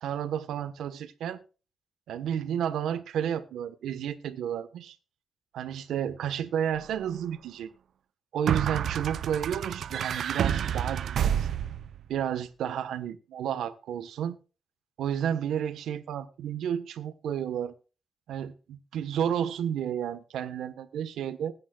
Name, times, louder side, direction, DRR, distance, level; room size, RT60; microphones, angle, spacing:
voice 1, 0.0-1.4 2.1-5.0 5.5-7.7 8.3-11.5 12.1-14.4 15.0-17.7 18.3-21.5, right 9 dB, 90° right, 1.2 m, -31 dB
sound 1, 8.5-12.0, right 9 dB, 65° right, 0.6 m, -29 dB
20.0 x 9.4 x 2.4 m
cardioid pair, 125°, 0 cm